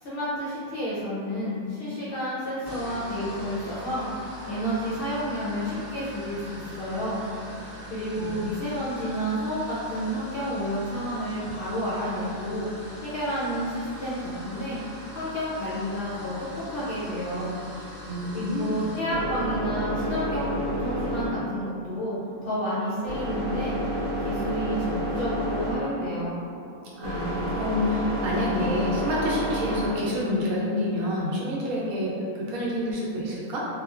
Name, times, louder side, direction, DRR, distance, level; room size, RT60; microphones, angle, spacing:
voice 1, 0.0-7.2 7.9-12.9 13.1-14.8 15.1-16.3 16.7-17.6 18.3-22.2 22.4-23.9 24.2-26.4, equal, 60° left, -9 dB, 0.6 m, -30 dB
sound 1, 2.6-19.1, left 1 dB, 20° right, 0.8 m, -42 dB
sound 2, 17.6-30.5, equal, 5° left, 0.5 m, -31 dB
voice 2, 18.1-18.8 27.0-33.7, left 1 dB, 85° right, -5 dB, 1.1 m, -28 dB
3.0 x 2.1 x 2.3 m, 2.4 s
omnidirectional pair, 1.4 m